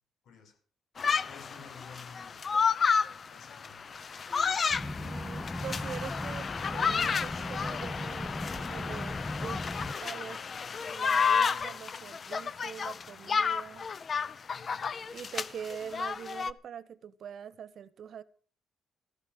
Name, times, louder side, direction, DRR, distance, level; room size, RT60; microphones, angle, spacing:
voice 1, 0.2-0.6 1.3-2.5 3.3-3.9 14.5-15.0, left 6 dB, 75° left, 6.1 m, -52 dB
sound 1, 1.0-16.5, left 6 dB, 45° left, 0.8 m, -31 dB
sound 2, 4.7-9.9, left 1 dB, 10° left, 1.0 m, -38 dB
voice 2, 5.0-10.4 10.9-13.9 15.1-18.2, right 8 dB, 60° right, 1.3 m, -44 dB
14.5 x 13.5 x 6.1 m
cardioid pair, 90°, 0 cm